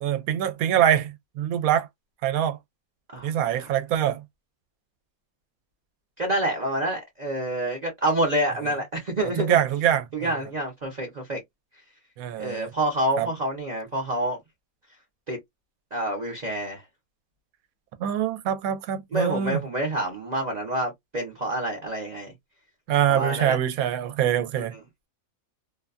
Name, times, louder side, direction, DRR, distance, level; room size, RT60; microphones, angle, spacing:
voice 1, 0.0-1.9 2.2-2.6 3.2-4.2 9.4-10.3 12.2-12.7 13.2-13.3 18.0-19.6 22.9-24.7, right 10 dB, 80° right, 1.0 m, -24 dB
voice 2, 6.2-9.6 10.1-11.4 12.4-14.4 15.3-15.4 15.9-16.8 19.1-22.3 23.1-23.6 24.5-24.7, right 1 dB, 40° right, 0.6 m, -27 dB
2.6 x 2.2 x 2.3 m
omnidirectional pair, 1.5 m